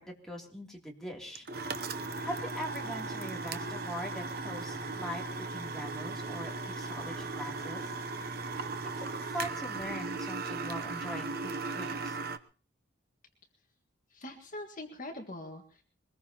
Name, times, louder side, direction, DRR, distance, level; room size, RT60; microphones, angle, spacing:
voice 1, 0.0-1.4 2.2-7.9 9.0-12.2, equal, 5° left, -2 dB, 3.0 m, -42 dB
sound 1, 1.3-12.4, right 3 dB, 50° right, 0.8 m, -37 dB
voice 2, 14.1-15.8, left 1 dB, 45° left, 3 dB, 1.8 m, -43 dB
23.0 x 20.5 x 3.0 m, 0.38 s
head